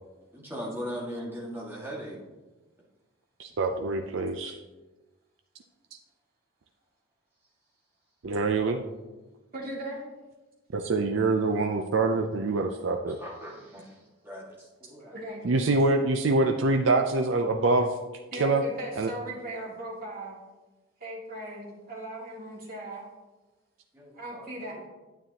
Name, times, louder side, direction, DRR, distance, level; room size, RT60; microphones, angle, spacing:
voice 1, 0.3-2.2 13.2-14.0 14.2-15.2 23.9-24.8, equal, 10° right, -5 dB, 1.8 m, -39 dB
voice 2, 3.4-4.6 8.2-8.8 10.7-13.2 15.4-17.9 18.3-18.6 19.0-19.1, right 3 dB, 60° right, 4 dB, 0.5 m, -25 dB
voice 3, 9.5-10.0 15.0-15.5 18.3-20.3 21.0-23.0 24.1-24.8, right 1 dB, 45° right, -5 dB, 2.5 m, -38 dB
9.3 x 9.0 x 2.9 m, 1.2 s
head